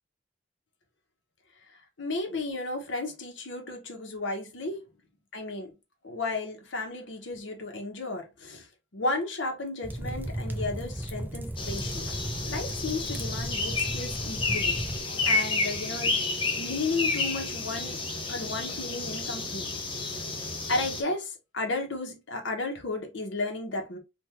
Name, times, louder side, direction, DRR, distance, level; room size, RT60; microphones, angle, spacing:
voice 1, 2.0-4.8 5.3-5.7 6.0-8.7 8.9-12.1 12.5-14.8 15.3-16.2 16.6-18.0 18.3-19.7 20.7-24.0, left 2 dB, 75° left, 1.0 m, -33 dB
sound 1, 9.8-15.0, right 1 dB, 10° right, 0.3 m, -35 dB
sound 2, 11.6-21.0, left 3 dB, 25° left, 0.6 m, -31 dB
3.5 x 2.5 x 2.8 m
head